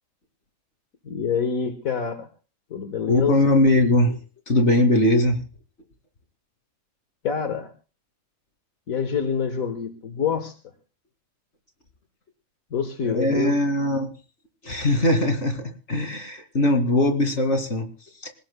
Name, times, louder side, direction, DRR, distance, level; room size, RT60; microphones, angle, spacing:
voice 1, 1.0-2.3 2.7-3.6 7.2-7.7 8.9-10.5 12.7-13.6, left 6 dB, 80° left, 8 dB, 1.7 m, -26 dB
voice 2, 3.1-4.2 4.5-5.4 13.0-14.1 14.6-17.9 18.2-18.3, left 1 dB, 55° left, 6 dB, 2.6 m, -20 dB
27.5 x 17.0 x 2.2 m, 0.36 s
omnidirectional pair, 1.5 m